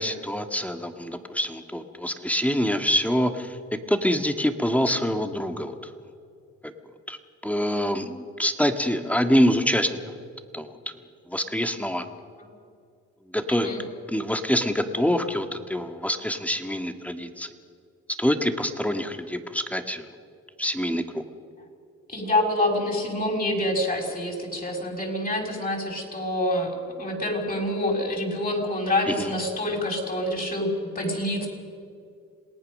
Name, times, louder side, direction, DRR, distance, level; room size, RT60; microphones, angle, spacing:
voice 1, 0.0-5.9 7.1-7.2 7.4-10.0 10.5-10.8 11.3-12.0 13.3-13.8 14.1-17.5 18.2-20.1 20.6-21.2 29.1-29.3, equal, 5° left, 7 dB, 1.6 m, -25 dB
voice 2, 13.5-13.8 22.1-30.7 30.9-31.5, left 1 dB, 30° left, 0 dB, 6.0 m, -27 dB
27.5 x 18.0 x 6.6 m, 2.3 s
cardioid pair, 90°, 30 cm